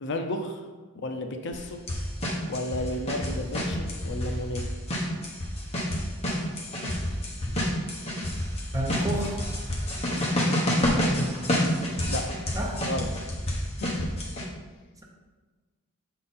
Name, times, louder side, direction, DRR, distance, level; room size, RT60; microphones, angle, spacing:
voice 1, 0.0-0.7 0.9-1.8 2.4-4.7 10.9-11.3 12.0-12.3 12.9-13.1 13.8-14.1, left 1 dB, 55° left, 5 dB, 0.5 m, -33 dB
sound 1, 1.5-1.6 1.9-4.3 4.6-14.4, equal, 30° left, 1.1 m, -28 dB
voice 2, 8.7-9.5 12.5-12.9, right 1 dB, 15° right, -1 dB, 0.7 m, -31 dB
7.4 x 3.8 x 4.1 m, 1.3 s
head